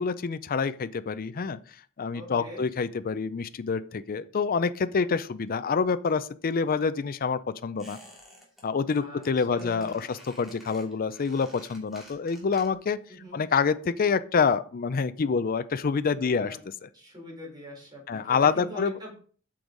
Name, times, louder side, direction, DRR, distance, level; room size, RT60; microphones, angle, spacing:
voice 1, 0.0-1.6 2.0-8.0 8.6-13.0 13.3-16.6 18.1-19.0, left 5 dB, 40° left, 13 dB, 0.4 m, -27 dB
voice 2, 2.1-2.7 8.9-10.2 13.1-13.4 16.2-16.6 16.9-19.1, equal, 20° right, -3 dB, 4.3 m, -43 dB
Squeak, 7.8-8.6 8.9-9.3 9.6-13.0 13.2-13.3, equal, ahead, 2.7 m, -51 dB
8.5 x 6.3 x 3.9 m, 0.43 s
head